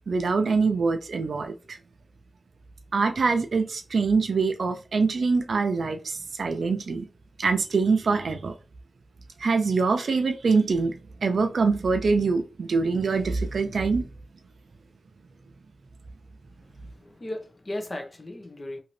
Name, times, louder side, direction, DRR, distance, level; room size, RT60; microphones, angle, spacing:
voice 1, 0.1-1.8 2.9-7.1 7.4-8.5 9.4-10.9 11.2-14.1, right 4 dB, 75° right, 0.5 m, -24 dB
voice 2, 16.6-18.8, left 1 dB, 40° left, 0.9 m, -37 dB
2.8 x 2.7 x 3.1 m
cardioid pair, 45°, 0 cm